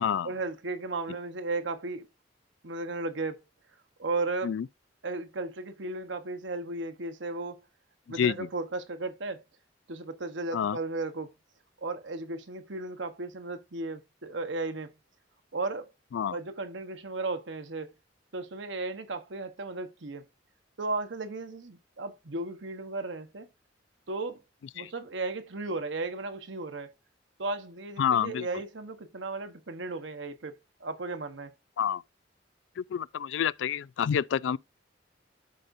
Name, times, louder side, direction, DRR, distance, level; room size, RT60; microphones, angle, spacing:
voice 1, 0.2-2.1 2.6-3.4 4.0-4.5 5.0-7.6 8.1-9.4 9.9-11.3 11.8-14.9 15.5-15.9 16.3-17.9 18.3-20.2 20.8-23.5 24.1-24.4 24.7-26.9 27.4-31.5, right 3 dB, 75° right, 1.1 m, -35 dB
voice 2, 8.2-8.5 10.5-10.8 16.1-16.4 24.8-24.9 28.0-28.5 31.8-32.0 32.8-34.6, left 8 dB, 75° left, 0.3 m, -28 dB
12.5 x 5.1 x 2.6 m
head